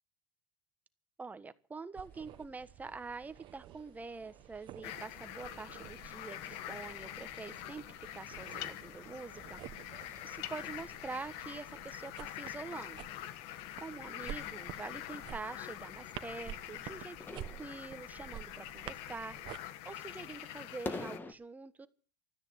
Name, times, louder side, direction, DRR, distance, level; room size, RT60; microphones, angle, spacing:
voice 1, 1.2-9.6 10.2-13.0 13.8-19.4 19.8-21.9, right 4 dB, 15° right, 1.3 m, -46 dB
sound 1, 1.9-19.6, right 13 dB, 50° right, 1.1 m, -51 dB
sound 2, 2.0-21.3, left 3 dB, 20° left, 1.6 m, -53 dB
sound 3, 4.8-21.2, left 13 dB, 70° left, 1.3 m, -45 dB
13.5 x 9.8 x 9.2 m
supercardioid pair, 120°, 10 cm